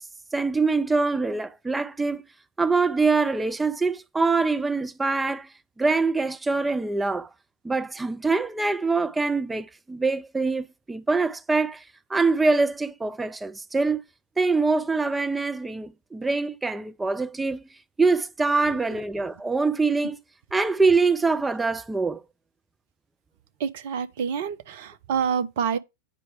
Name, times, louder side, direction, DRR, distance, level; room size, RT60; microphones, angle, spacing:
voice 1, 0.3-2.2 2.6-5.5 5.8-7.3 7.6-11.8 12.1-14.0 14.4-17.6 18.0-20.2 20.5-22.2, right 3 dB, 10° right, 0.5 m, -24 dB
voice 2, 23.6-25.8, right 7 dB, 55° right, 0.7 m, -27 dB
9.1 x 4.5 x 4.8 m
figure-of-eight pair, 90°, 0 cm